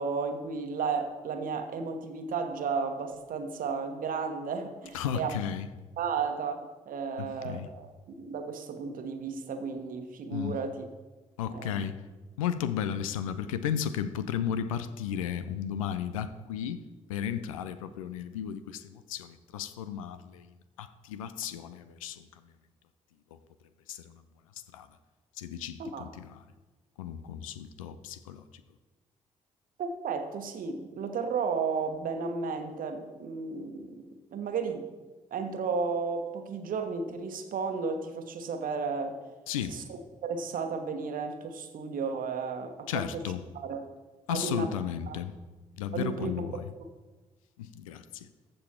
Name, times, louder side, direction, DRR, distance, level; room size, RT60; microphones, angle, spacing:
voice 1, 0.0-5.4 6.0-7.9 8.2-10.9 11.5-11.8 25.8-26.1 29.8-34.9 35.3-39.2 39.7-39.8 40.2-43.2 43.6-43.9 44.3-44.7 45.1-45.2 45.9-46.5, right 5 dB, 55° right, 6 dB, 1.2 m, -33 dB
voice 2, 4.9-5.7 7.2-7.7 10.3-10.6 11.4-12.0 12.4-16.8 17.1-22.5 23.3-23.4 23.9-24.2 24.7-24.9 25.4-26.4 27.0-28.4 39.5-39.8 42.9-43.4 44.3-45.3 45.8-46.7 47.6-48.3, left 9 dB, 75° left, 12 dB, 0.5 m, -34 dB
14.5 x 5.5 x 4.4 m, 1.2 s
figure-of-eight pair, 40°, 17 cm